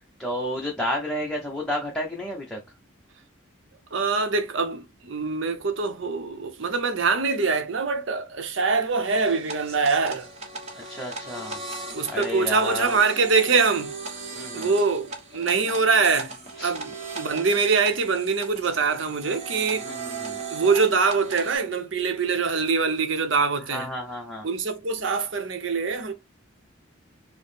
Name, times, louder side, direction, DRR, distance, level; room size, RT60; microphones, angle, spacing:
voice 1, 0.0-2.6 10.7-11.6 12.1-13.0 14.3-14.7 16.6-16.7 19.8-20.4 23.7-24.5, left 1 dB, 5° left, 0.7 m, -31 dB
voice 2, 3.9-10.3 11.9-14.2 14.5-16.3 16.6-19.9 20.5-23.9 24.4-26.1, right 4 dB, 70° right, 0.7 m, -24 dB
sound 1, 9.0-21.6, right 3 dB, 30° right, 1.0 m, -37 dB
4.5 x 2.1 x 3.3 m
head